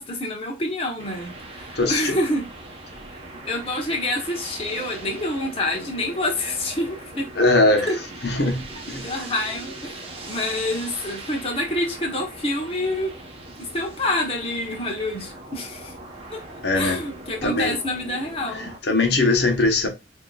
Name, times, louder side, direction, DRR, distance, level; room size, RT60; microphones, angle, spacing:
voice 1, 0.0-2.5 3.1-7.3 7.9-8.0 8.9-13.1 13.6-15.9 16.3-16.4 16.7-18.7, left 1 dB, 30° left, 0.9 m, -27 dB
sound 1, 1.0-18.8, right 2 dB, 30° right, 0.9 m, -40 dB
voice 2, 1.7-2.2 7.4-7.9 8.2-9.1 16.6-17.0 17.4-17.8 18.5-19.9, left 2 dB, 65° left, 1.1 m, -21 dB
6.7 x 2.8 x 2.3 m
head